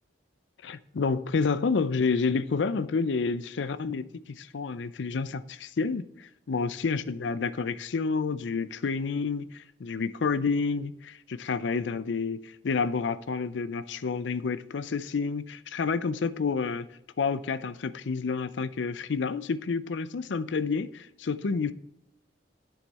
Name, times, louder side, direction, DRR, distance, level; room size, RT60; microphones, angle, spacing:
voice 1, 0.6-16.9 17.2-21.7, left 4 dB, 80° left, 0.5 m, -29 dB
9.2 x 7.1 x 4.2 m
head